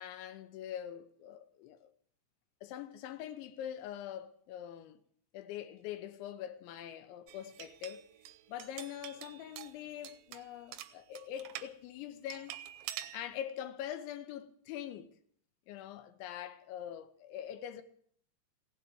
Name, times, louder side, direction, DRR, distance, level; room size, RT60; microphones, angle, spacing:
voice 1, 0.0-1.9 2.6-5.0 5.3-8.1 8.5-12.6 13.1-15.1 15.7-17.8, left 10 dB, 80° left, 3.2 m, -43 dB
sound 1, 7.3-11.7 12.3-13.2, right 13 dB, 80° right, 2.8 m, -47 dB
16.5 x 8.1 x 9.3 m
omnidirectional pair, 5.4 m